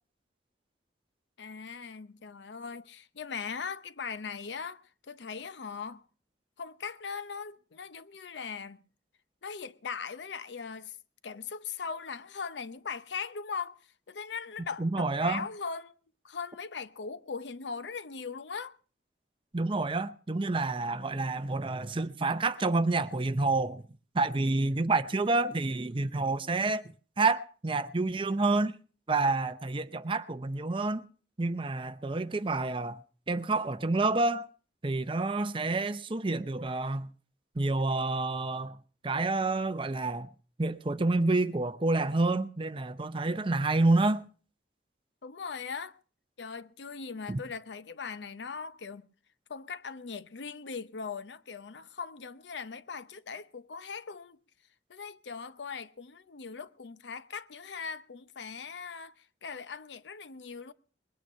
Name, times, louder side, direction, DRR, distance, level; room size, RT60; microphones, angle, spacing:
voice 1, 1.4-4.8 5.1-6.0 6.6-8.8 9.4-11.0 11.2-13.8 14.1-15.9 16.2-18.8 45.2-45.9 46.4-49.1 49.5-54.4 54.9-60.7, left 5 dB, 75° left, 0.7 m, -40 dB
voice 2, 14.8-15.4 19.5-23.8 24.1-26.8 27.2-28.7 29.1-31.1 31.4-33.0 33.3-34.5 34.8-37.1 37.6-38.8 39.0-40.3 40.6-44.2 47.3-47.4, right 3 dB, 30° right, 0.6 m, -28 dB
21.0 x 9.2 x 5.5 m
head